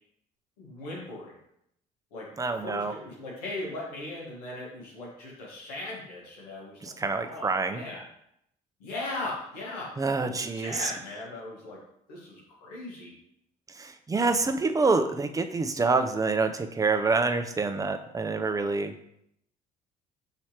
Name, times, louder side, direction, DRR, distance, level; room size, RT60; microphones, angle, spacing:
voice 1, 0.6-1.4 2.1-2.3 2.6-8.1 8.8-11.8 12.1-13.1, left 2 dB, 90° left, -3 dB, 1.4 m, -39 dB
voice 2, 2.4-2.9 6.8-7.8 10.0-10.9 13.8-18.9, right 3 dB, 20° right, 7 dB, 0.5 m, -27 dB
5.9 x 3.1 x 2.8 m, 0.75 s
supercardioid pair, 70°, 19 cm